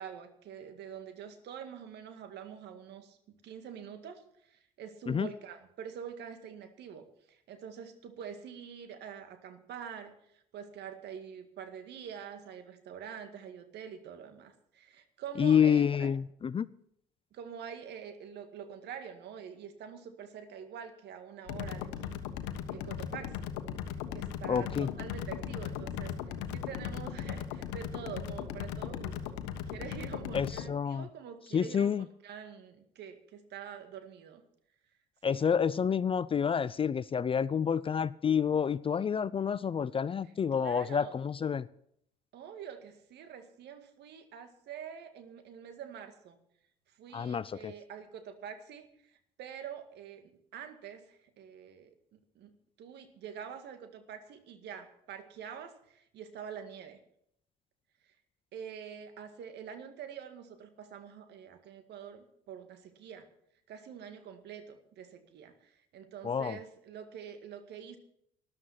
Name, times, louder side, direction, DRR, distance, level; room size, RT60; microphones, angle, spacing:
voice 1, 0.0-16.1 17.3-22.2 22.7-23.5 24.1-29.4 29.7-34.4 35.2-35.4 40.5-41.2 42.3-46.4 46.9-57.0 58.0-58.1 58.5-63.3 63.7-68.0, right 8 dB, 60° right, 8 dB, 2.0 m, -46 dB
voice 2, 15.4-16.7 24.5-24.9 30.3-31.1 31.5-32.0 35.2-41.7 47.1-47.7 66.2-66.6, left 7 dB, 30° left, 19 dB, 0.5 m, -28 dB
sound 1, 21.5-30.7, left 9 dB, 75° left, 1.3 m, -38 dB
13.5 x 11.5 x 5.9 m, 0.71 s
hypercardioid pair, 60°, 20 cm